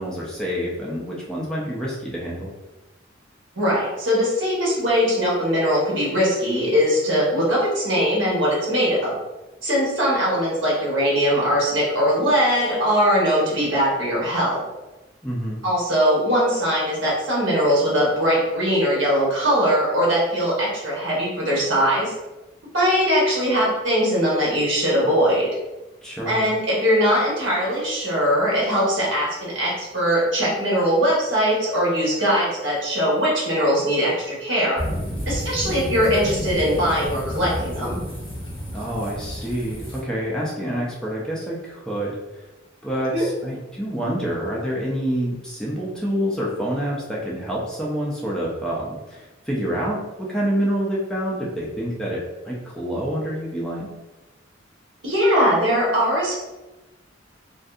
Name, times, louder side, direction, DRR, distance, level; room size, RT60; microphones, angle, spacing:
voice 1, 0.0-2.5 15.2-15.6 26.0-26.4 38.7-42.5 42.8-53.9, equal, 5° left, -5 dB, 0.4 m, -27 dB
voice 2, 3.6-9.1 9.6-14.6 15.6-22.1 22.7-25.5 26.3-34.8 35.3-38.0 43.1-43.2 55.0-56.3, equal, 70° right, -5 dB, 1.1 m, -21 dB
sound 1, 34.8-40.0, equal, 30° left, 0.9 m, -30 dB
2.6 x 2.5 x 2.4 m, 1.1 s
head